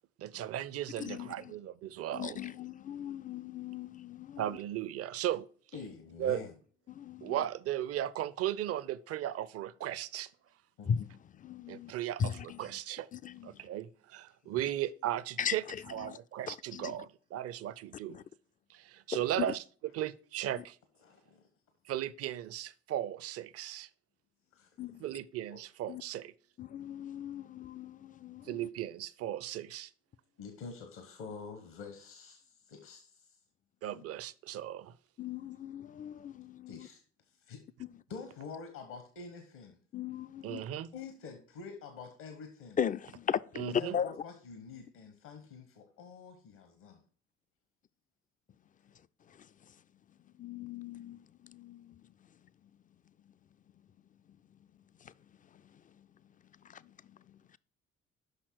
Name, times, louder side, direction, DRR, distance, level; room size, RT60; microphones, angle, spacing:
voice 1, 0.2-2.4 4.4-5.5 6.2-6.4 7.2-10.3 11.7-13.1 13.4-15.6 15.9-18.2 18.7-19.6 19.9-20.8 21.9-23.9 25.0-26.3 28.5-29.9 33.8-34.9 40.4-40.9 43.6-44.0, right 12 dB, 50° right, 0.5 m, -36 dB
voice 2, 1.0-1.5 2.1-4.6 6.9-7.4 10.9-11.9 12.2-12.8 13.1-13.7 15.4-16.2 16.5-17.1 18.1-18.2 19.1-19.2 20.6-20.7 24.8-25.1 25.9-26.0 26.6-28.7 33.9-34.0 35.2-36.9 37.8-37.9 39.9-40.7 42.8-44.2 49.3-49.8 50.2-52.1 55.0-55.1 55.5-56.1 56.6-57.6, left 8 dB, 25° left, 0.3 m, -38 dB
voice 3, 5.7-6.5 10.8-10.9 14.4-14.7 21.0-21.4 24.5-24.7 25.5-25.6 30.4-33.4 36.3-37.0 37.5-37.6 38.1-39.8 40.9-42.8 43.7-47.0, left 5 dB, 70° left, 1.2 m, -47 dB
6.4 x 5.7 x 4.6 m
hypercardioid pair, 45°, 32 cm